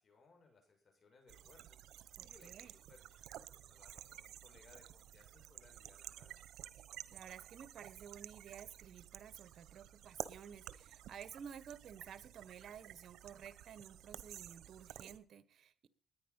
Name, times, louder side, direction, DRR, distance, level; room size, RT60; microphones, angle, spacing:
voice 1, 0.0-6.4, left 3 dB, 45° left, 4 dB, 7.1 m, -66 dB
sound 1, 1.3-15.2, right 12 dB, 75° right, 1.1 m, -53 dB
voice 2, 2.2-2.7 7.1-15.9, right 8 dB, 60° right, 15 dB, 1.4 m, -53 dB
20.0 x 9.8 x 5.6 m, 0.42 s
cardioid pair, 90°, 0 cm